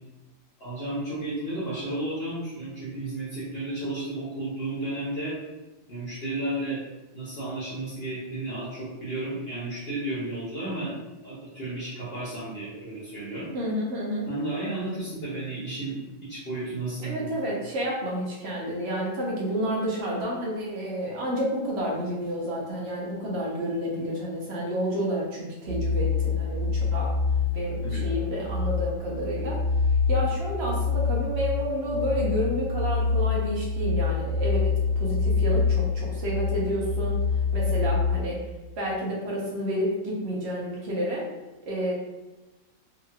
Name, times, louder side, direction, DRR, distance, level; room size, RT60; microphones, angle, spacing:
voice 1, 0.6-5.4 5.9-6.8 7.1-10.9 11.2-13.5 14.3-17.3 27.8-28.0, right 2 dB, 50° left, -9 dB, 1.0 m, -33 dB
voice 2, 13.5-14.3 17.0-27.1 27.5-29.6 30.1-37.2 37.5-38.4 38.8-41.2 41.6-41.9, equal, 60° right, -4 dB, 0.8 m, -30 dB
sound 1, 25.7-38.2, left 4 dB, 85° right, 1.1 m, -26 dB
2.9 x 2.8 x 2.3 m, 1.1 s
omnidirectional pair, 1.4 m